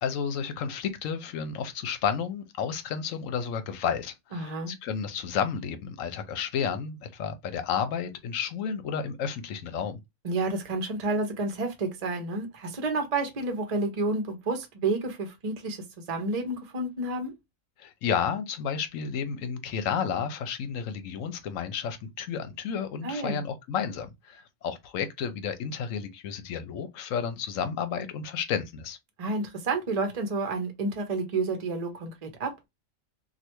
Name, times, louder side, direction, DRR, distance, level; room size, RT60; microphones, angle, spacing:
voice 1, 0.0-10.0 17.8-29.0, left 7 dB, 75° left, 1.0 m, -31 dB
voice 2, 4.3-4.7 10.2-17.3 23.0-23.4 29.2-32.5, right 3 dB, 35° right, 0.6 m, -30 dB
3.2 x 2.4 x 2.9 m
omnidirectional pair, 1.4 m